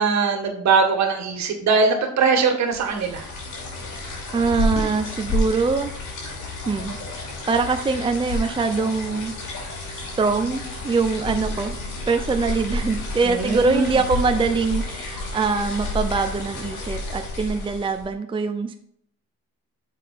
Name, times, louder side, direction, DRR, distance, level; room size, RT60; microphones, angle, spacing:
voice 1, 0.0-3.2 13.3-14.0, right 5 dB, 65° right, 4 dB, 1.8 m, -21 dB
sound 1, 2.7-18.1, left 2 dB, 80° left, 2.9 m, -30 dB
voice 2, 4.3-5.9 6.7-9.3 9.9-11.8 12.1-18.7, right 4 dB, 15° right, 6 dB, 0.6 m, -23 dB
7.4 x 4.9 x 4.3 m, 0.67 s
cardioid pair, 90°, 30 cm